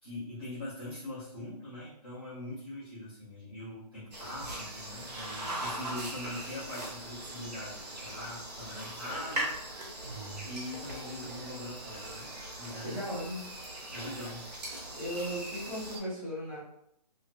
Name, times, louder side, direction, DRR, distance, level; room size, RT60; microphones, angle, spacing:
voice 1, 0.0-9.5 10.5-13.0 13.9-14.5, left 1 dB, 15° left, -14 dB, 0.6 m, -42 dB
sound 1, 4.1-16.0, right 1 dB, 80° right, 1.5 m, -40 dB
voice 2, 12.8-13.4 14.9-16.6, equal, 25° right, -10 dB, 1.0 m, -36 dB
3.0 x 2.4 x 2.4 m, 0.77 s
hypercardioid pair, 180°, 21 cm